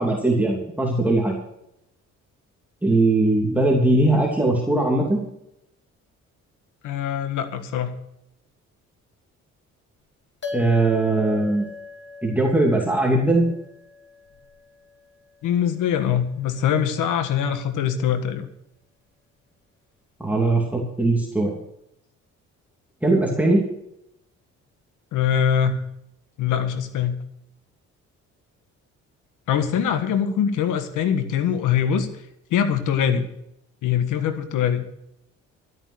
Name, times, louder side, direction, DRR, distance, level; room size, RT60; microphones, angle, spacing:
voice 1, 0.0-1.4 2.8-5.3 10.5-11.7 12.2-13.5 20.2-21.5 23.0-23.6, right 2 dB, 5° right, -2 dB, 2.8 m, -20 dB
voice 2, 6.8-7.9 15.4-18.5 25.1-25.8 26.4-27.2 29.5-32.1 32.5-33.3 33.8-34.8, left 8 dB, 90° left, 9 dB, 1.6 m, -23 dB
sound 1, 10.4-15.1, left 4 dB, 35° left, 3.0 m, -39 dB
13.0 x 9.2 x 6.4 m, 0.80 s
cardioid pair, 90°, 30 cm